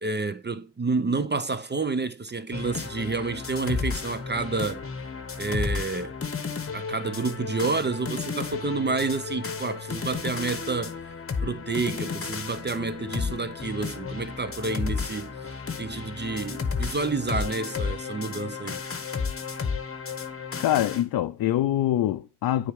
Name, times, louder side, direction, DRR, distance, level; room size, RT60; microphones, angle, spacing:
voice 1, 0.0-4.9 5.4-6.2 6.7-11.0 11.4-15.3 15.8-18.8, right 3 dB, 25° right, 0.6 m, -29 dB
sound 1, 2.5-21.0, left 5 dB, 30° left, 1.0 m, -33 dB
voice 2, 20.6-22.7, left 13 dB, 50° left, 0.5 m, -24 dB
9.2 x 3.6 x 3.5 m
hypercardioid pair, 40°, 46 cm